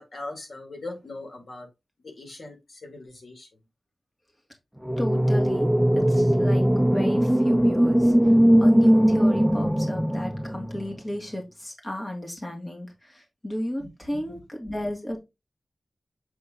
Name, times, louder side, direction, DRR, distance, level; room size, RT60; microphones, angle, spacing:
voice 1, 0.0-1.7 2.2-2.6 2.8-3.5 13.8-13.9, left 2 dB, 65° left, 2.2 m, -39 dB
sound 1, 4.8-11.0, equal, ahead, 0.7 m, -20 dB
voice 2, 5.0-5.7 6.0-8.1 8.6-15.2, left 1 dB, 20° left, 2.5 m, -34 dB
7.8 x 3.7 x 3.7 m
wide cardioid pair, 90°, 0 cm